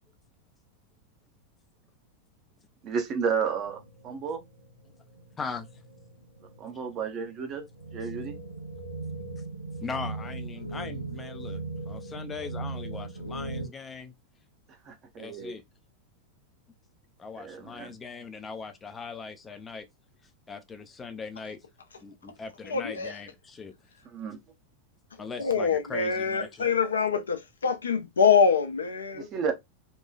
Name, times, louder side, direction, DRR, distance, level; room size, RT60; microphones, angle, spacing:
voice 1, 2.8-4.4 6.6-7.6 7.9-8.4 14.9-15.5 17.4-17.9 24.1-24.4 29.1-29.5, right 6 dB, 35° right, 0.7 m, -32 dB
sound 1, 3.7-13.7, right 3 dB, 85° right, 0.6 m, -39 dB
voice 2, 9.8-14.1 15.2-15.6 17.2-19.9 20.5-21.6 22.0-23.7 25.2-26.7, left 5 dB, 15° left, 0.5 m, -40 dB
voice 3, 22.7-23.1 25.4-29.3, left 6 dB, 70° left, 0.5 m, -24 dB
2.9 x 2.2 x 2.3 m
figure-of-eight pair, 90°, 0 cm